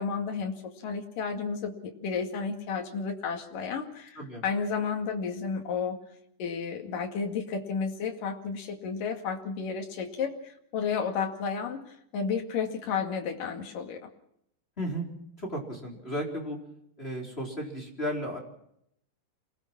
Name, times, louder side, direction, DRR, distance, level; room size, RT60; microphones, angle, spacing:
voice 1, 0.0-6.0 6.4-14.1, left 5 dB, 50° left, 3 dB, 3.2 m, -32 dB
voice 2, 15.4-16.6 17.0-18.4, equal, 15° left, 0 dB, 3.8 m, -34 dB
27.5 x 19.0 x 6.1 m, 0.74 s
omnidirectional pair, 5.9 m